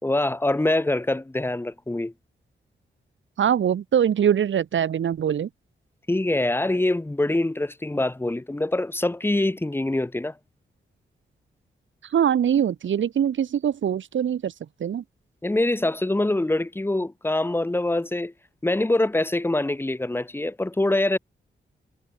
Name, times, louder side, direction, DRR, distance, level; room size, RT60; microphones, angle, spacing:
voice 1, 0.0-2.1 6.1-10.4 15.4-18.3 18.6-21.2, left 2 dB, 10° left, 4.4 m, -24 dB
voice 2, 3.4-5.5 12.0-14.5 14.8-15.0, right 9 dB, 85° right, 1.7 m, -23 dB
wide cardioid pair, 175°, 19 cm